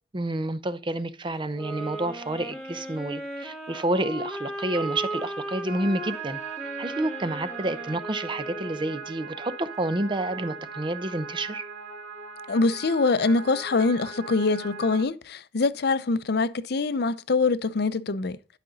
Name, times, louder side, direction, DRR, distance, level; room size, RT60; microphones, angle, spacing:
voice 1, 0.1-6.4 6.8-11.6, right 1 dB, 25° right, 0.6 m, -29 dB
sound 1, 1.5-9.4, right 1 dB, ahead, 1.9 m, -36 dB
sound 2, 5.6-15.0, right 6 dB, 75° right, 2.8 m, -39 dB
voice 2, 12.5-18.4, left 3 dB, 60° left, 0.6 m, -24 dB
11.5 x 5.1 x 3.9 m
head